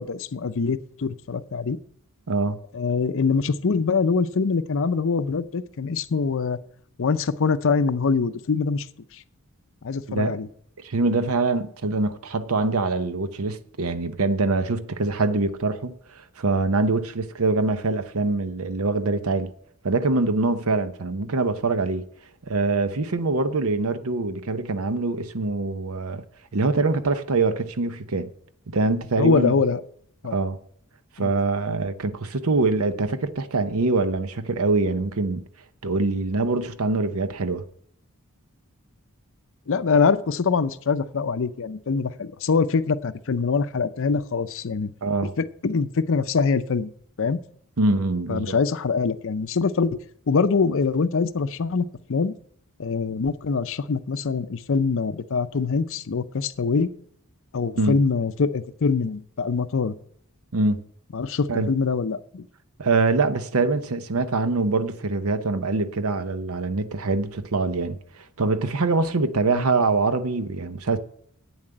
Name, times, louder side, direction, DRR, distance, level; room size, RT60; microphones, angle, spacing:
voice 1, 0.0-1.8 2.7-6.6 7.0-8.9 9.1-9.2 9.8-10.5 29.2-29.8 30.2-30.3 31.2-31.3 39.7-44.9 45.4-46.9 47.2-47.4 48.3-50.0 50.3-52.3 52.8-56.9 57.5-59.9 61.1-62.5 69.5-69.6, left 4 dB, 60° left, 0.6 m, -24 dB
voice 2, 2.3-2.6 10.1-10.4 10.8-19.5 19.8-22.1 22.5-26.2 26.5-28.3 28.7-29.5 30.3-30.6 31.2-35.4 35.8-37.7 45.0-45.3 47.8-48.6 57.8-58.0 60.5-60.8 61.5-61.7 62.8-68.0 68.4-71.0, right 3 dB, 70° right, 0.8 m, -24 dB
8.7 x 7.3 x 7.8 m
head